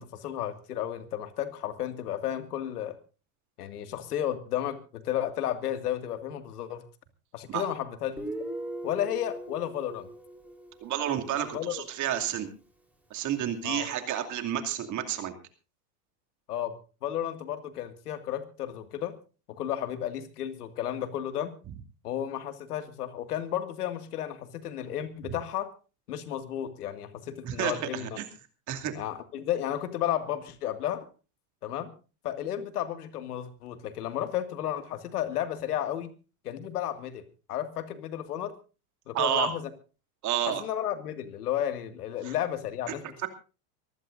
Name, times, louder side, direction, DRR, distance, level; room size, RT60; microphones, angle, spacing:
voice 1, 0.0-3.0 3.6-6.8 7.3-8.3 8.8-10.1 11.5-11.7 13.6-13.9 16.5-16.7 17.0-19.2 19.5-21.5 22.0-25.7 26.1-28.1 28.9-31.1 31.6-31.9 32.2-36.1 36.4-37.2 37.5-38.5 39.1-39.6 40.5-43.3, left 11 dB, 90° left, 9 dB, 2.2 m, -33 dB
Guitar, 8.2-11.7, right 1 dB, 5° right, 3.9 m, -40 dB
voice 2, 10.8-12.5 13.1-15.3 27.4-28.3 28.7-28.9 39.1-39.5 40.2-40.6 42.2-42.3 43.2-43.3, right 10 dB, 40° right, 7 dB, 2.6 m, -30 dB
24.5 x 15.5 x 2.6 m, 0.34 s
supercardioid pair, 125°, 45 cm